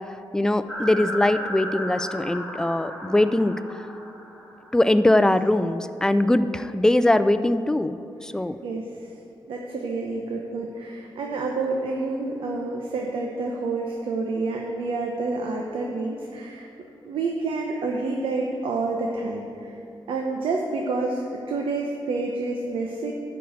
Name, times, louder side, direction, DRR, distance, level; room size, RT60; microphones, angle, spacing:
voice 1, 0.3-3.8 4.7-8.6, left 1 dB, 5° left, 11 dB, 0.4 m, -21 dB
sound 1, 0.7-5.0, equal, 10° right, 2.0 m, -34 dB
voice 2, 8.6-9.1 9.5-16.7 17.0-19.8 20.1-21.2 21.5-23.1, right 3 dB, 90° right, 0 dB, 0.8 m, -28 dB
11.5 x 4.6 x 8.0 m, 2.7 s
cardioid pair, 100°, 9 cm